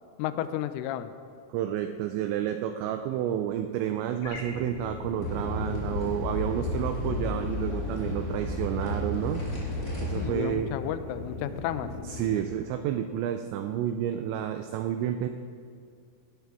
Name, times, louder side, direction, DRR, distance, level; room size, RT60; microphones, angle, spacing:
voice 1, 0.2-1.1 10.1-11.9, left 11 dB, 85° left, 12 dB, 3.1 m, -32 dB
voice 2, 1.5-9.4 10.0-10.7 12.0-15.3, right 10 dB, 85° right, 7 dB, 2.5 m, -30 dB
sound 1, 4.2-12.4, left 2 dB, 55° left, 2.2 m, -39 dB
sound 2, 5.2-10.3, left 1 dB, 20° left, 2.4 m, -32 dB
17.5 x 12.0 x 3.5 m, 2.3 s
omnidirectional pair, 5.7 m